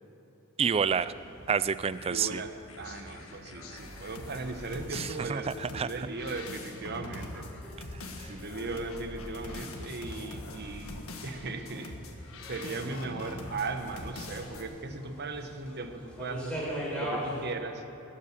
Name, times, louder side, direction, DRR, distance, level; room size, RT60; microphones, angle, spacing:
sound 1, 0.6-17.5, equal, 5° left, 4.2 m, -44 dB
voice 1, 0.6-1.1 1.5-2.4 4.9-6.1 7.9-8.3, right 6 dB, 25° right, 16 dB, 0.3 m, -29 dB
sound 2, 1.9-14.6, left 2 dB, 65° left, 1.8 m, -43 dB
voice 2, 2.1-7.5 8.2-11.9 12.5-16.6 17.0-17.8, right 3 dB, 50° right, 6 dB, 1.1 m, -38 dB
21.0 x 8.7 x 7.3 m, 2.9 s
head